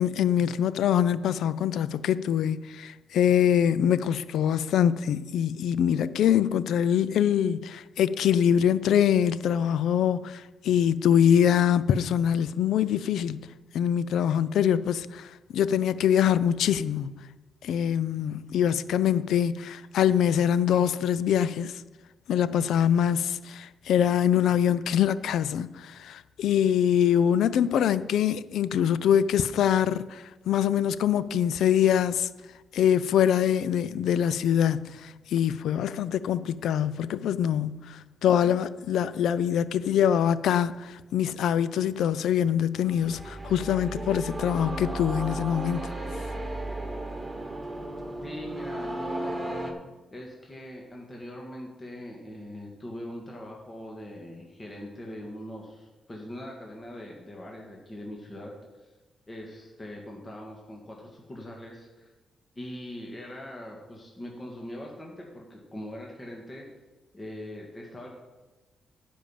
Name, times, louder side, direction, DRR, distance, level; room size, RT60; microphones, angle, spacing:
voice 1, 0.0-13.5 13.7-17.1 17.6-21.8 22.3-32.3 32.7-45.9, left 9 dB, 80° left, 0.4 m, -24 dB
sound 1, 42.8-49.7, right 1 dB, 15° right, 1.9 m, -34 dB
voice 2, 48.2-49.5 50.1-58.5 58.8-58.9 59.3-62.1 62.6-66.7 67.1-68.1, left 1 dB, 25° left, 1.8 m, -41 dB
10.0 x 5.3 x 7.3 m
cardioid pair, 65°, 0 cm